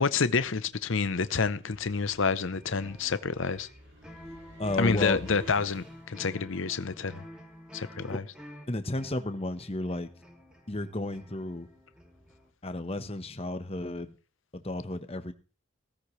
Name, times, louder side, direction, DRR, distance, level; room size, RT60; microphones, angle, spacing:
voice 1, 0.0-3.7 4.8-7.2 7.7-8.2, left 4 dB, 60° left, 0.8 m, -28 dB
sound 1, 0.7-6.3, right 1 dB, 55° right, 2.7 m, -52 dB
sound 2, 2.4-12.5, equal, 5° right, 2.5 m, -50 dB
voice 2, 4.6-5.2 8.1-8.2 8.7-10.1 10.7-11.7 12.6-14.1 14.5-15.3, left 1 dB, 25° left, 1.1 m, -32 dB
16.5 x 15.0 x 3.2 m
head